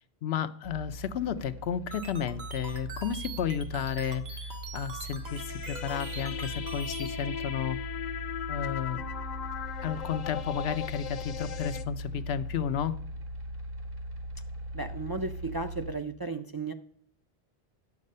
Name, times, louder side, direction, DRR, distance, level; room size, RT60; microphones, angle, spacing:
voice 1, 0.2-7.8 8.5-9.0 9.8-13.0, left 8 dB, 90° left, 11 dB, 0.9 m, -32 dB
sound 1, 0.6-15.9, equal, 65° right, 1.6 m, -40 dB
sound 2, 1.9-7.1, right 4 dB, 90° right, 1.7 m, -43 dB
sound 3, 5.2-11.8, left 9 dB, 55° left, 0.7 m, -38 dB
voice 2, 14.7-16.7, right 3 dB, 35° right, 6 dB, 0.3 m, -34 dB
11.0 x 7.4 x 5.4 m, 0.64 s
omnidirectional pair, 1.0 m